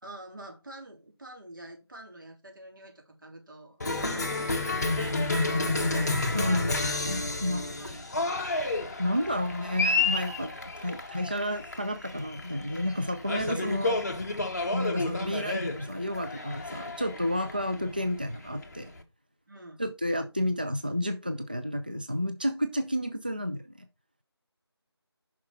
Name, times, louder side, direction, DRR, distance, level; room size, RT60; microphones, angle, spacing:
voice 1, 0.0-6.0 7.8-8.5 9.4-9.5 13.2-13.3 17.4-17.6 19.5-19.8, right 1 dB, 50° right, 3.7 m, -48 dB
Cheering, 3.8-19.0, left 2 dB, 40° left, 1.3 m, -31 dB
voice 2, 6.3-7.7 9.0-10.5 10.8-14.0 14.7-18.9 19.8-23.8, left 1 dB, 20° right, 0.4 m, -31 dB
9.5 x 6.0 x 4.4 m
figure-of-eight pair, 170°, 14 cm